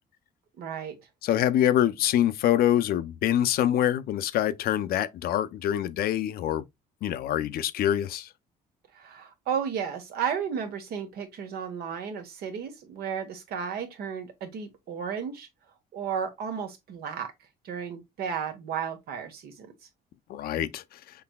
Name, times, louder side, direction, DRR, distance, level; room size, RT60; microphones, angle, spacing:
voice 1, 0.6-1.0 8.9-15.5 15.9-17.3 17.6-19.7, right 7 dB, 65° right, 1.2 m, -33 dB
voice 2, 1.2-6.6 7.0-8.3 20.3-21.0, left 11 dB, 65° left, 0.5 m, -25 dB
5.9 x 3.2 x 2.2 m
cardioid pair, 110°, 17 cm